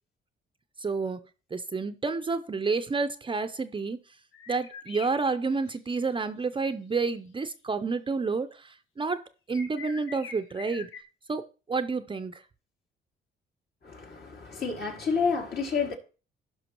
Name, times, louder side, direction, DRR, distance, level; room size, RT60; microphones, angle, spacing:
voice 1, 0.8-1.2 1.5-4.0 4.5-9.2 9.5-10.9 11.3-12.4, right 4 dB, 25° right, 0.6 m, -30 dB
sound 1, 4.3-6.0 7.4-7.5 9.5-11.0, left 5 dB, 80° left, 1.2 m, -45 dB
voice 2, 13.8-16.0, left 5 dB, 55° left, 2.4 m, -29 dB
16.5 x 5.6 x 3.0 m
cardioid pair, 90°, 20 cm